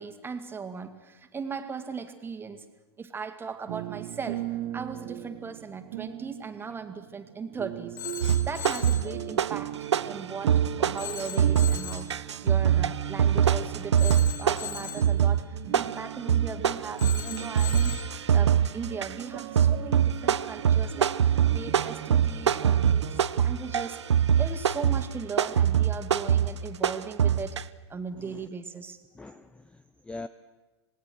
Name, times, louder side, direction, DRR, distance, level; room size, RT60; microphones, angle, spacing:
voice 1, 0.0-2.6 3.0-12.1 12.4-24.0 24.4-29.0, right 5 dB, 15° right, 7 dB, 2.2 m, -38 dB
sound 1, 3.7-23.2, right 15 dB, 50° right, 1.0 m, -39 dB
Telephone, 8.0-9.1 11.0-12.1 14.0-15.1 17.0-18.1, left 9 dB, 25° left, 5.1 m, -39 dB
sound 2, 8.2-9.7 9.9-27.6, right 8 dB, 85° right, 0.7 m, -24 dB
voice 2, 28.2-28.5 29.1-30.3, left 2 dB, 5° left, 13 dB, 0.7 m, -43 dB
27.0 x 19.0 x 6.4 m, 1.2 s
hypercardioid pair, 110°, 14 cm